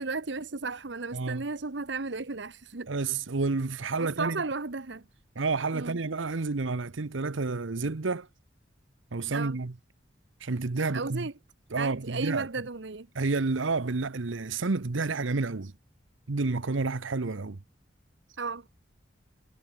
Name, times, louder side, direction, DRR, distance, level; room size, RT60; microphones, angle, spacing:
voice 1, 0.0-2.9 4.0-5.1 5.7-6.0 9.3-9.6 10.9-11.3 11.8-13.1 18.4-18.7, right 3 dB, 65° right, 1.1 m, -34 dB
voice 2, 1.1-1.4 2.9-4.4 5.4-8.3 9.1-9.7 10.4-11.3 11.7-12.5 13.1-15.7 16.3-17.6, right 3 dB, 85° right, 0.9 m, -30 dB
head